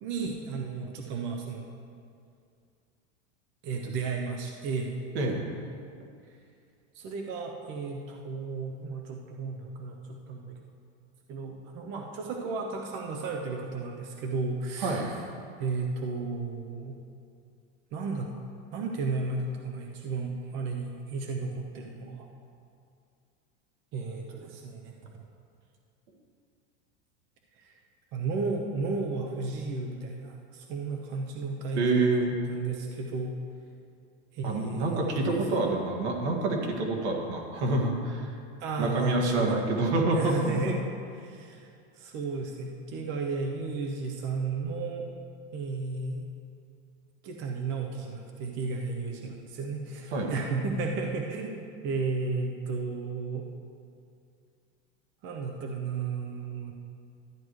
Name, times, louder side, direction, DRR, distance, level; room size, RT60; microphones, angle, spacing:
voice 1, 0.0-1.7 3.6-5.0 6.9-10.6 11.3-15.2 15.6-17.0 17.9-18.3 18.7-22.3 23.9-25.1 27.6-27.8 28.1-33.4 34.3-35.4 38.6-39.6 40.1-40.8 41.2-45.1 45.5-46.3 47.2-53.5 55.2-56.7, right 4 dB, 35° right, 1 dB, 0.8 m, -33 dB
voice 2, 31.8-32.4 34.4-38.3 38.8-40.8 50.1-50.3, right 2 dB, 80° right, 0 dB, 2.0 m, -27 dB
13.0 x 10.0 x 3.2 m, 2.4 s
supercardioid pair, 155°, 33 cm